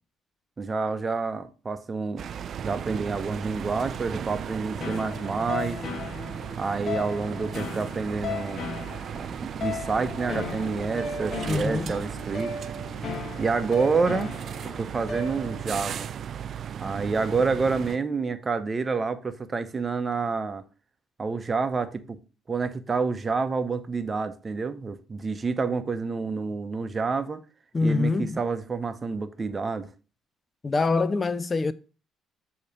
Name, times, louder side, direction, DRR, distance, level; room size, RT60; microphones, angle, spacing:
voice 1, 0.6-2.2 2.6-5.8 6.6-8.6 9.1-12.6 13.4-14.3 14.6-16.1 16.8-20.6 21.2-22.2 22.5-27.4 27.8-29.9, right 4 dB, 35° right, 0.7 m, -28 dB
sound 1, 2.2-18.0, right 8 dB, 55° right, 0.3 m, -36 dB
sound 2, 4.8-15.8, left 4 dB, 50° left, 1.1 m, -36 dB
voice 2, 11.5-11.9 27.7-28.4 30.6-31.7, left 3 dB, 35° left, 0.4 m, -25 dB
6.5 x 2.9 x 5.3 m
supercardioid pair, 65°, 0 cm